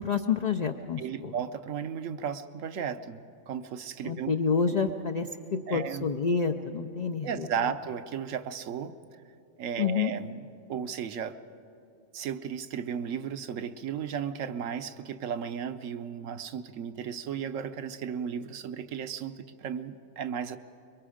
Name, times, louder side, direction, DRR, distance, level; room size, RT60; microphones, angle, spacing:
voice 1, 0.0-1.3 4.0-7.5 9.8-10.1, left 5 dB, 65° left, 5 dB, 0.4 m, -28 dB
voice 2, 1.0-3.2 3.5-4.3 4.7-4.8 5.7-6.1 7.2-8.9 9.6-11.4 12.1-20.6, right 8 dB, 70° right, 11 dB, 1.1 m, -35 dB
25.5 x 22.5 x 5.0 m, 2.6 s
omnidirectional pair, 1.4 m